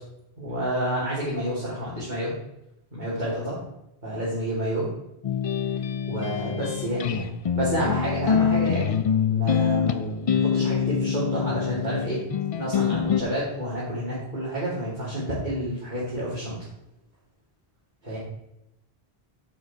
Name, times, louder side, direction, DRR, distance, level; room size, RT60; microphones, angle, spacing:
voice 1, 0.4-2.3 2.9-3.6 4.0-4.9 6.1-7.3 7.6-8.9 9.3-12.2 12.5-16.6 18.0-18.2, right 1 dB, 45° right, -9 dB, 3.5 m, -29 dB
sound 1, 5.2-13.2, left 7 dB, 55° left, 0.3 m, -25 dB
9.1 x 8.0 x 4.5 m, 0.87 s
omnidirectional pair, 1.1 m